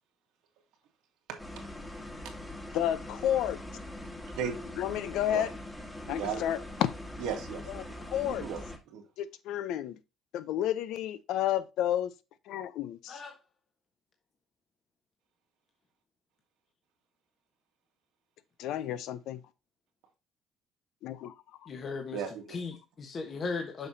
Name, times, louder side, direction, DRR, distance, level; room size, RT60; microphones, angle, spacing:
sound 1, 1.4-8.8, left 1 dB, 10° left, 1.5 m, -42 dB
voice 1, 2.7-3.6 4.8-5.5 6.1-6.9 7.7-8.4 9.2-10.0 10.3-12.1 12.5-13.2 18.6-19.4 21.0-21.3, left 11 dB, 80° left, 0.7 m, -31 dB
voice 2, 6.1-6.4 7.2-8.0 8.2-9.0 22.1-22.6, right 7 dB, 90° right, 1.9 m, -36 dB
voice 3, 21.7-22.2 22.5-23.9, left 4 dB, 40° left, 1.2 m, -37 dB
6.8 x 6.0 x 2.7 m
cardioid pair, 120°, 0 cm